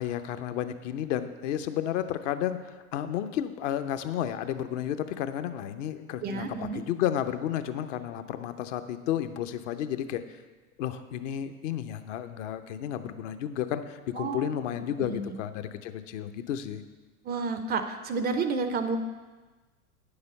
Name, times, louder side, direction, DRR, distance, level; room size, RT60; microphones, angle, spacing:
voice 1, 0.0-10.2 10.8-16.8, left 10 dB, 55° left, 9 dB, 0.8 m, -32 dB
voice 2, 6.2-6.8 14.1-15.4 17.2-19.0, right 4 dB, 20° right, 9 dB, 0.5 m, -31 dB
9.6 x 6.9 x 5.3 m, 1.3 s
figure-of-eight pair, 85°, 45 cm